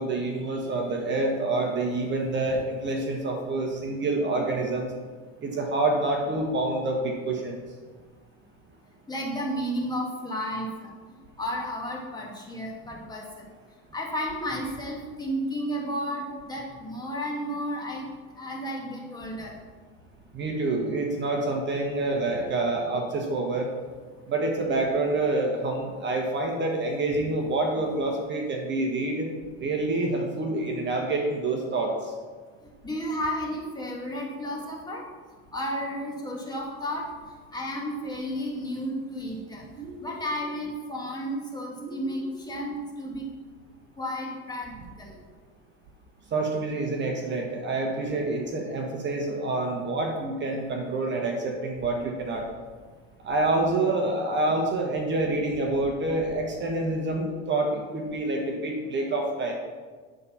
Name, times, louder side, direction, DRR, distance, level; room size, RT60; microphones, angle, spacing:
voice 1, 0.0-4.9 5.4-7.6 20.3-23.7 24.3-29.3 29.6-32.1 46.3-52.5 53.2-59.5, right 2 dB, 35° right, 1 dB, 1.3 m, -27 dB
voice 2, 9.1-10.9 11.4-13.5 13.9-18.1 18.4-19.5 32.8-35.0 35.5-37.1 37.5-39.6 40.0-43.2 44.0-45.1, equal, 10° left, -2 dB, 2.0 m, -32 dB
sound 1, 39.7-40.6 41.8-42.7, right 2 dB, 65° right, 2.3 m, -43 dB
9.6 x 4.2 x 5.7 m, 1.5 s
supercardioid pair, 115°, 34 cm